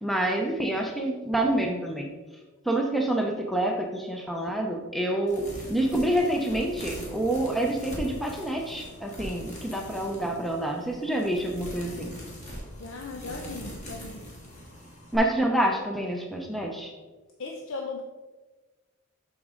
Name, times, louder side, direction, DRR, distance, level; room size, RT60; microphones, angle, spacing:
voice 1, 0.0-2.1 2.7-12.1 15.1-16.9, right 1 dB, ahead, 2 dB, 0.7 m, -27 dB
sound 1, 5.3-15.2, equal, 35° left, 1.8 m, -41 dB
voice 2, 12.8-14.2 17.4-18.0, left 3 dB, 70° left, 2 dB, 0.7 m, -37 dB
7.6 x 6.2 x 3.8 m, 1.2 s
head